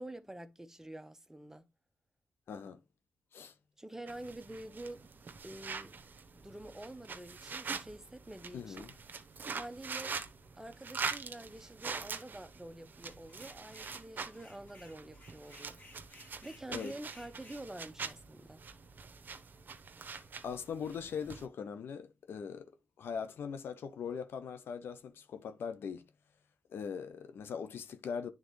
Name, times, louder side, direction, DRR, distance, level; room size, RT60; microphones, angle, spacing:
voice 1, 0.0-1.7 3.8-5.1 5.4-6.0 6.3-8.8 9.5-10.2 10.6-15.8 16.2-18.6, right 1 dB, 10° right, 0.9 m, -47 dB
voice 2, 2.5-2.8 3.3-3.5 8.5-8.9 16.7-16.9 20.0-22.7 23.0-26.1 26.7-28.3, left 6 dB, 70° left, 0.7 m, -41 dB
sound 1, 4.1-21.4, right 5 dB, 55° right, 0.9 m, -44 dB
sound 2, 13.3-14.0 14.3-17.6, left 2 dB, 50° left, 2.0 m, -58 dB
9.6 x 3.8 x 3.1 m
supercardioid pair, 45°, 4 cm